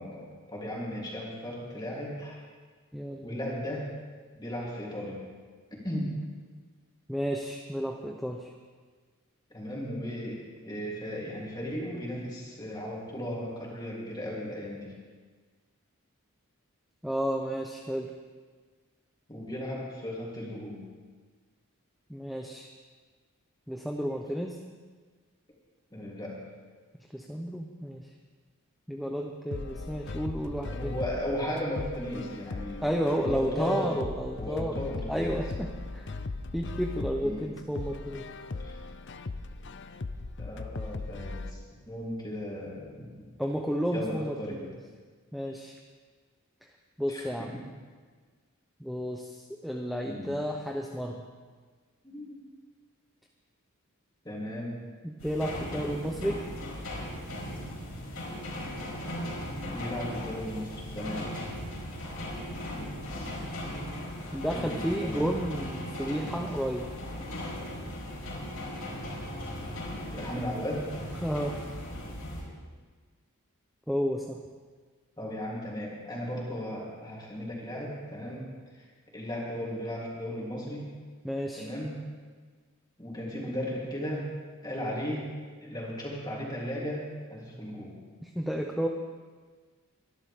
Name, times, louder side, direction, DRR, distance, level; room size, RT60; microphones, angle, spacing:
voice 1, 0.0-2.4 3.2-3.9 4.4-5.2 5.8-6.1 9.5-14.9 19.3-20.8 25.9-26.4 30.7-32.9 33.2-33.9 34.4-35.4 37.2-37.5 38.0-38.1 38.6-38.8 40.4-41.6 41.9-43.3 43.9-44.6 47.1-47.6 50.1-50.3 52.0-52.4 54.2-54.7 56.2-56.3 59.6-61.3 64.5-65.2 70.1-70.8 75.2-78.8 79.1-80.9 81.5-82.0 83.0-84.3 84.6-85.3 85.6-88.0, equal, 20° left, -4 dB, 3.2 m, -36 dB
voice 2, 2.9-3.4 7.1-8.5 17.0-18.1 22.1-22.7 23.7-24.6 27.1-28.1 28.9-31.0 32.8-34.7 35.1-36.1 36.5-38.3 43.4-44.7 45.3-45.8 47.0-47.5 48.8-51.2 55.0-56.4 64.3-66.9 71.2-71.8 73.9-74.4 81.2-81.7 88.2-88.9, equal, ahead, 1 dB, 0.6 m, -32 dB
sound 1, 29.5-41.5, left 3 dB, 55° left, 0.6 m, -38 dB
sound 2, 55.2-72.4, left 1 dB, 80° left, 5.0 m, -38 dB
24.0 x 11.5 x 3.6 m, 1.5 s
head